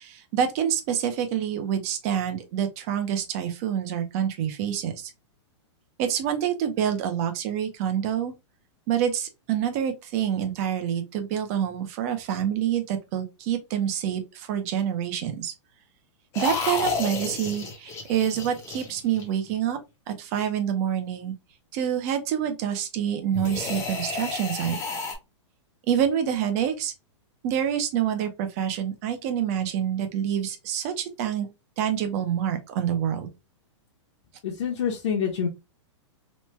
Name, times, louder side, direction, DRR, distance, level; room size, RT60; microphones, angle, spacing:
voice 1, 0.0-5.1 6.0-8.3 8.9-15.5 16.4-19.8 20.1-21.3 21.7-24.8 25.9-26.9 27.4-31.5 31.8-33.3, right 9 dB, 30° right, 0.5 m, -27 dB
sound 1, 16.3-19.5 23.3-25.1, left 4 dB, 15° left, 0.6 m, -31 dB
voice 2, 34.4-35.5, left 7 dB, 65° left, 0.8 m, -26 dB
3.1 x 2.1 x 3.1 m
supercardioid pair, 165°, 16 cm